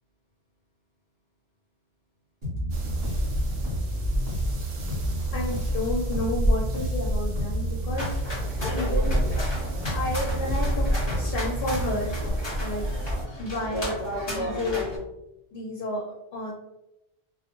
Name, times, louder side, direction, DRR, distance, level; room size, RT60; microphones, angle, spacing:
Bass guitar, 2.4-12.3, equal, 50° right, 1.1 m, -31 dB
sound 1, 2.7-13.2, equal, 75° right, 0.8 m, -29 dB
voice 1, 5.3-8.2 8.7-9.2 9.9-10.9 11.1-12.2 12.6-12.9 13.4-14.0 14.3-14.9 15.5-16.0 16.3-16.5, left 1 dB, 65° left, -2 dB, 0.7 m, -31 dB
sound 2, 7.9-15.0, left 1 dB, 30° left, 0.7 m, -34 dB
2.4 x 2.0 x 2.8 m, 0.90 s
omnidirectional pair, 1.1 m